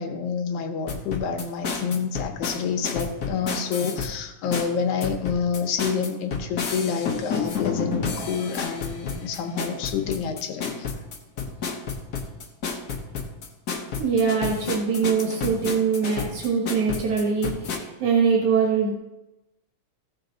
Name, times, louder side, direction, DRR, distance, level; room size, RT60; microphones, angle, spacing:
voice 1, 0.0-10.9 11.4-11.5, left 6 dB, 85° left, 4 dB, 2.5 m, -28 dB
sound 1, 0.9-4.1 4.5-17.8, left 5 dB, 60° left, 1.0 m, -31 dB
voice 2, 13.9-18.9, right 5 dB, 80° right, -1 dB, 2.9 m, -23 dB
15.5 x 6.0 x 4.0 m, 0.97 s
omnidirectional pair, 3.3 m